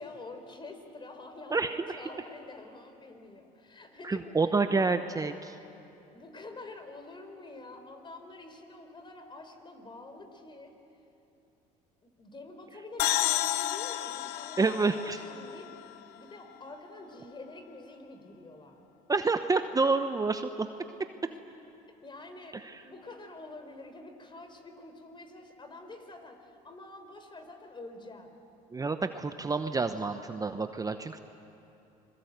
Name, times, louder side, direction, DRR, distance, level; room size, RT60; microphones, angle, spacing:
voice 1, 0.0-1.6 2.0-4.3 4.6-4.8 6.1-10.7 12.0-15.7 16.0-18.8 21.3-21.4 21.9-28.4, left 2 dB, 30° left, 7 dB, 4.1 m, -47 dB
voice 2, 1.5-2.0 4.0-5.6 14.6-15.2 19.1-20.7 22.5-22.8 28.7-31.2, right 4 dB, 20° right, 9 dB, 1.0 m, -28 dB
sound 1, 13.0-16.6, left 14 dB, 70° left, 0.8 m, -32 dB
27.5 x 21.5 x 8.2 m, 2.8 s
supercardioid pair, 75°, 17 cm